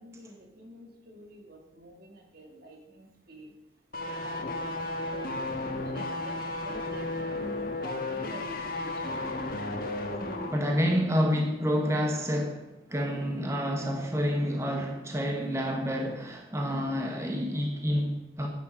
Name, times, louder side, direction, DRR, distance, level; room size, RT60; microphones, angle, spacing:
voice 1, 0.0-3.5 4.0-4.8 5.1-9.2, equal, 55° right, 2 dB, 2.0 m, -47 dB
sound 1, 3.9-10.6 10.9-11.0, left 2 dB, 50° left, 1.5 m, -34 dB
voice 2, 10.4-18.5, equal, 15° right, 2 dB, 1.2 m, -28 dB
10.5 x 8.7 x 5.2 m, 0.89 s
head